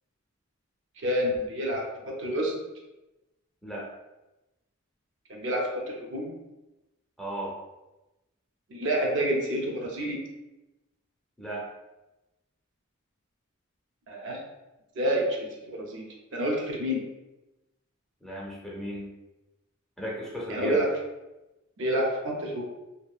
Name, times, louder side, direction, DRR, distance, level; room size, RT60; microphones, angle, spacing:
voice 1, 1.0-2.5 5.3-6.3 8.7-10.2 14.1-14.4 15.0-15.4 15.7-16.0 16.3-17.0 20.5-20.9 21.8-22.6, equal, 60° right, -1 dB, 0.5 m, -28 dB
voice 2, 7.2-7.5 11.4-11.7 18.2-19.1 20.0-20.8, right 1 dB, ahead, -5 dB, 0.5 m, -35 dB
2.7 x 2.3 x 2.3 m, 1.0 s
head